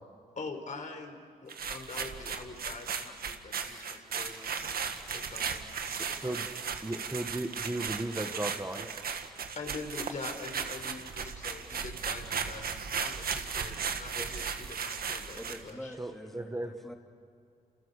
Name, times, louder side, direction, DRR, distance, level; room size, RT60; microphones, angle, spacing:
voice 1, 0.4-6.5 9.6-15.9, left 3 dB, 50° left, 4 dB, 4.1 m, -44 dB
sound 1, 1.5-15.7, right 6 dB, 70° right, 1.8 m, -36 dB
voice 2, 5.8-6.4 6.8-8.9 14.2-14.3 16.0-16.7, right 1 dB, 15° right, 5 dB, 1.6 m, -36 dB
voice 3, 15.4-16.9, equal, ahead, 2 dB, 3.1 m, -45 dB
29.5 x 28.5 x 6.8 m, 2.4 s
cardioid pair, 75°, 16 cm